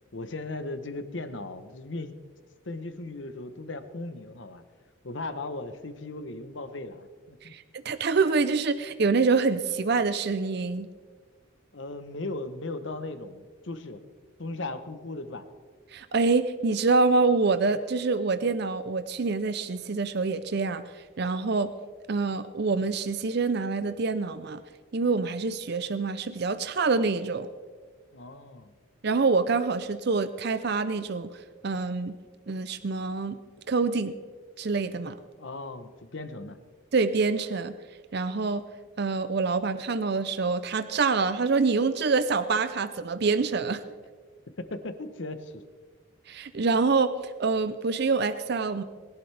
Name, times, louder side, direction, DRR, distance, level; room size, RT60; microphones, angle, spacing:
voice 1, 0.1-2.1 2.7-4.6 5.0-7.5 11.7-14.0 14.4-15.5 28.1-28.7 35.4-36.6 44.6-45.6, left 2 dB, 65° left, 10 dB, 1.0 m, -37 dB
voice 2, 7.4-10.9 15.9-20.8 21.2-21.7 22.1-24.6 24.9-27.5 29.0-31.4 31.6-32.1 32.5-33.4 33.7-34.1 34.6-35.2 36.9-37.7 38.1-38.6 39.0-43.8 46.3-48.8, right 4 dB, 55° right, 11 dB, 0.5 m, -26 dB
21.0 x 11.5 x 3.4 m, 1.5 s
head